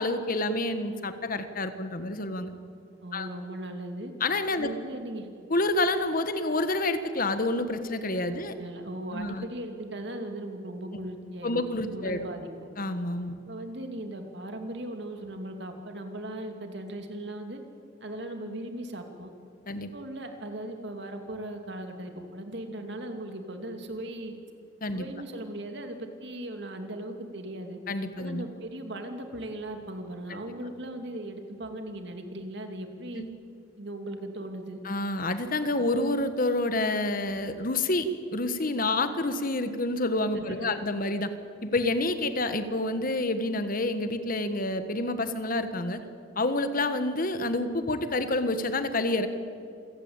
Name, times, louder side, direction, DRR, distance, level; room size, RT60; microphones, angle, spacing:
voice 1, 0.0-2.5 3.1-3.3 4.2-4.7 5.5-8.5 9.1-9.4 11.4-12.3 12.8-13.4 19.7-19.9 24.8-25.1 27.9-28.5 33.2-33.3 34.8-41.3 41.6-46.0 46.4-49.3, left 2 dB, 50° left, 10 dB, 1.4 m, -28 dB
voice 2, 3.0-4.1 4.5-5.3 8.3-12.5 13.5-17.6 18.0-19.3 19.9-24.4 24.9-27.8 28.2-33.2 33.8-34.8 40.3-40.8, right 1 dB, 65° right, 5 dB, 2.7 m, -38 dB
27.5 x 16.5 x 8.8 m, 2.5 s
head